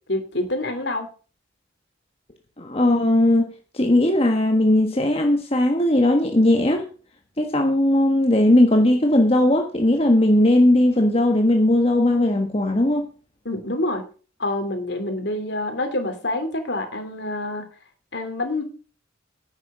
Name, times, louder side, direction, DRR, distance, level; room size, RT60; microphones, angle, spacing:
voice 1, 0.1-1.1 13.4-14.0 14.4-17.7 18.1-18.6, left 2 dB, 60° left, 6 dB, 3.0 m, -27 dB
voice 2, 2.6-6.9 7.4-13.1, left 1 dB, 30° left, 3 dB, 1.4 m, -18 dB
11.0 x 8.4 x 6.2 m, 0.37 s
head